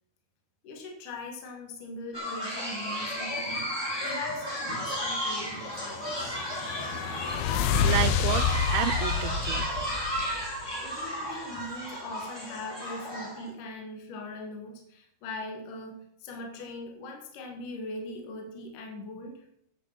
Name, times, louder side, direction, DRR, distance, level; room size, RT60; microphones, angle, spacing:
voice 1, 0.6-6.4 10.5-19.4, left 2 dB, 55° left, 3.1 m, -41 dB
sound 1, 2.1-13.5, equal, 10° left, 1.3 m, -33 dB
sound 2, 5.8-10.7, left 7 dB, 75° left, 2.6 m, -29 dB
voice 2, 7.8-9.7 10.0-10.3, right 16 dB, 80° right, 2.4 m, -31 dB
9.5 x 8.5 x 5.9 m
omnidirectional pair, 4.7 m